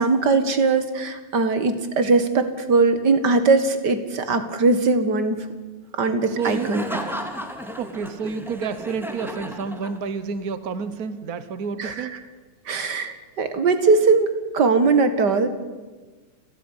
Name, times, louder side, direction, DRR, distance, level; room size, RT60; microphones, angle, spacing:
voice 1, 0.0-5.5 5.9-6.8 11.8-12.2 12.7-15.5, right 4 dB, 40° right, 10 dB, 2.0 m, -20 dB
voice 2, 6.3-6.8 7.8-12.1, right 5 dB, 80° right, 13 dB, 0.8 m, -29 dB
Laughter, 6.4-10.3, equal, ahead, 1.9 m, -34 dB
30.0 x 13.5 x 9.9 m, 1.3 s
omnidirectional pair, 3.4 m